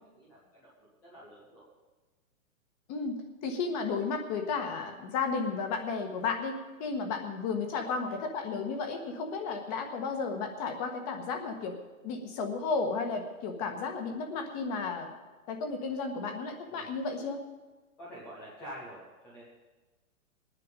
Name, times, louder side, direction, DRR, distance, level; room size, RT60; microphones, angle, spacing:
voice 1, 0.1-0.7 1.0-1.7 7.0-7.2 16.7-17.0 18.0-19.4, equal, 5° left, -7 dB, 0.5 m, -47 dB
voice 2, 3.4-6.5 6.8-11.8 12.0-15.1 15.5-17.4, left 4 dB, 25° left, 5 dB, 1.4 m, -33 dB
19.5 x 9.6 x 5.2 m, 1.2 s
hypercardioid pair, 155°, 43 cm